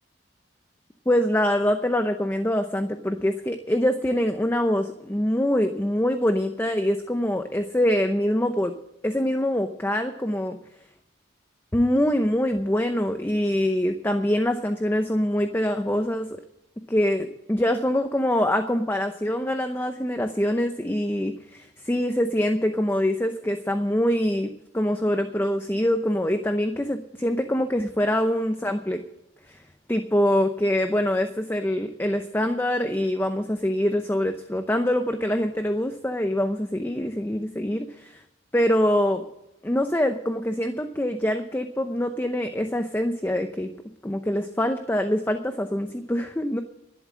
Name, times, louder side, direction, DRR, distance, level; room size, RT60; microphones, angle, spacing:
voice 1, 1.1-8.7 9.0-10.6 11.7-16.3 16.9-29.0 29.5-29.6 29.9-38.2 38.5-39.2 39.6-43.7 44.0-46.6, left 1 dB, 10° left, 7 dB, 0.7 m, -24 dB
11.5 x 11.5 x 7.4 m, 0.86 s
head